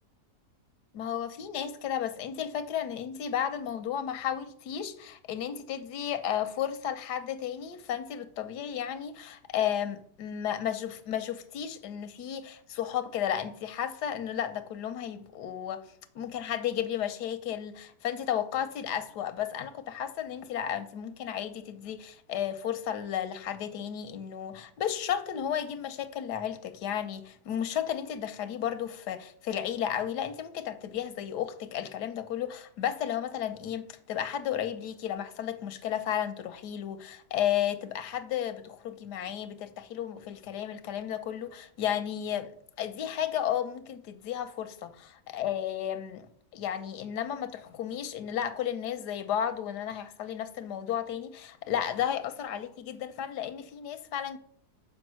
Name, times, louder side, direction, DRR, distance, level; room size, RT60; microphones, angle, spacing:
voice 1, 0.9-15.8 16.1-42.5 42.8-46.3 46.5-54.4, left 9 dB, 85° left, 1.3 m, -33 dB
7.1 x 5.1 x 6.2 m
omnidirectional pair, 1.7 m